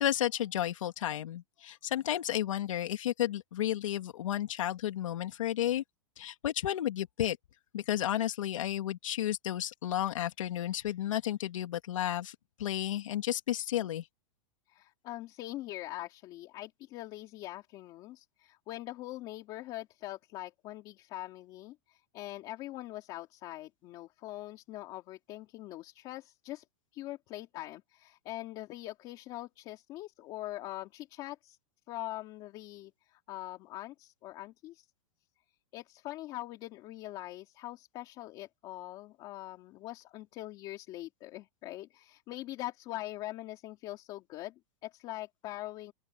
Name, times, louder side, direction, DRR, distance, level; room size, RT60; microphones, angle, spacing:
voice 1, 0.0-5.8 6.2-7.4 7.7-14.0, left 12 dB, 85° left, 3.0 m, -32 dB
voice 2, 14.7-26.6 26.9-31.6 31.9-34.9 35.7-45.9, left 16 dB, 25° left, 2.6 m, -43 dB
open air
supercardioid pair, 175°, 16 cm